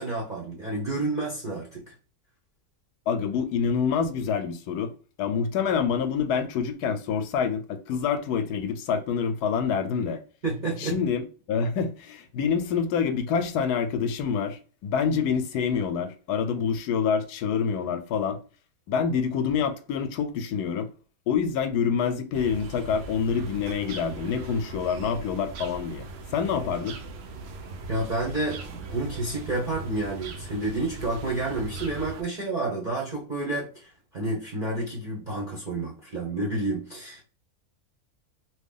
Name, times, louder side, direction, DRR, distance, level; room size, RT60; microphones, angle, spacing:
voice 1, 0.0-1.9 10.4-11.0 27.9-37.2, right 2 dB, 40° right, 0.8 m, -30 dB
voice 2, 3.1-4.9 5.2-10.2 10.8-11.2 11.5-18.4 18.9-20.9 21.3-26.0 26.3-27.0, left 6 dB, 90° left, 1.1 m, -26 dB
sound 1, 22.3-32.2, right 3 dB, 75° right, 0.6 m, -40 dB
3.0 x 2.3 x 3.6 m
omnidirectional pair, 1.6 m